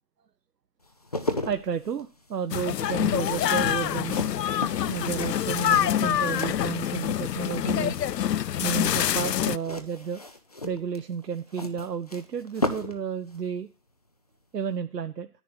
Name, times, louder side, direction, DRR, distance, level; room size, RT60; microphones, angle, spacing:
sound 1, 0.8-7.3 7.6-8.2 9.5-13.0 13.3-13.5, left 1 dB, 25° left, 0.5 m, -35 dB
voice 1, 1.4-4.2 4.9-8.0 8.6-10.2 10.6-13.7 14.5-15.3, right 7 dB, 90° right, 8 dB, 0.8 m, -32 dB
sound 2, 2.5-9.6, left 10 dB, 90° left, 0.6 m, -26 dB
10.0 x 9.6 x 4.1 m, 0.36 s
figure-of-eight pair, 155°, 47 cm